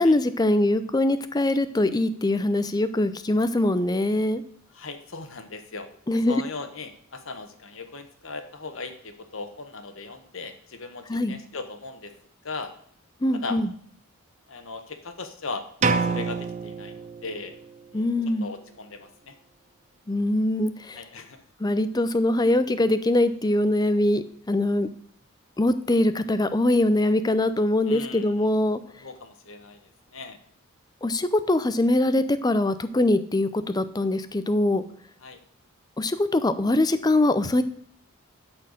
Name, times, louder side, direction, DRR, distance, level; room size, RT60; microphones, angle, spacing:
voice 1, 0.0-4.4 6.1-6.4 11.1-11.4 13.2-13.7 17.9-18.5 20.1-21.0 21.6-24.9 25.6-28.8 31.0-34.8 36.0-37.6, left 1 dB, 20° left, 12 dB, 0.5 m, -23 dB
voice 2, 4.7-5.9 6.1-12.1 12.4-12.7 13.3-13.6 14.5-15.6 16.0-17.5 17.9-18.1 18.4-19.3 20.9-21.4 27.9-28.5 29.0-30.4 35.2-35.4, left 3 dB, 60° left, 7 dB, 1.2 m, -38 dB
sound 1, 15.8-17.7, right 4 dB, 30° right, 0.5 m, -27 dB
12.0 x 4.5 x 6.5 m, 0.63 s
head